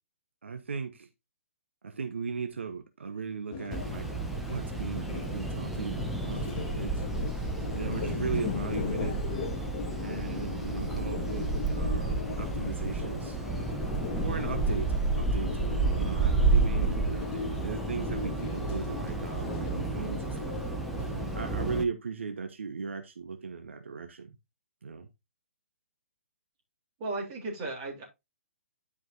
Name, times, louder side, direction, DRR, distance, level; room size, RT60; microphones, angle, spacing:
voice 1, 0.4-1.1 1.8-4.1 4.4-7.0 7.7-9.2 10.0-13.4 14.2-24.3 24.8-25.1, right 5 dB, 60° right, 1.1 m, -38 dB
sound 1, 3.5-21.8, left 7 dB, 30° left, 1.1 m, -38 dB
sound 2, 3.7-21.8, right 3 dB, ahead, 0.9 m, -31 dB
voice 2, 27.0-28.0, right 2 dB, 30° right, 3.4 m, -35 dB
12.5 x 5.2 x 2.7 m
figure-of-eight pair, 130°, 7 cm